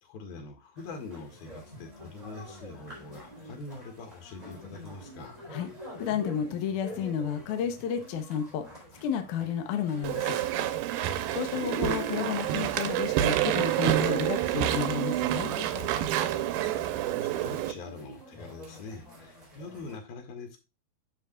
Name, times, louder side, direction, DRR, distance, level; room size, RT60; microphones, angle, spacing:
voice 1, 0.0-5.4 16.2-20.6, left 3 dB, 85° left, 4 dB, 3.7 m, -44 dB
sound 1, 0.8-20.0, equal, 10° right, 3.6 m, -47 dB
voice 2, 6.0-10.4 11.3-15.5, left 8 dB, 70° left, 6 dB, 2.2 m, -32 dB
Walk footsteps / Chatter / Squeak, 10.0-17.7, right 12 dB, 90° right, 2.6 m, -28 dB
10.0 x 6.5 x 2.4 m, 0.25 s
omnidirectional pair, 4.2 m